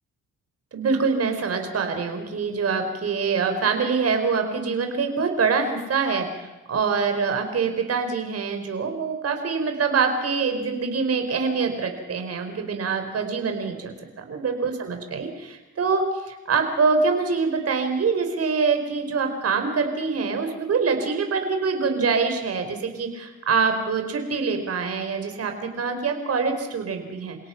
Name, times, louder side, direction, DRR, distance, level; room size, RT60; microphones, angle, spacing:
voice 1, 0.7-27.4, right 5 dB, 55° right, 5 dB, 4.8 m, -25 dB
29.0 x 17.5 x 6.0 m, 1.1 s
cardioid pair, 90°, 30 cm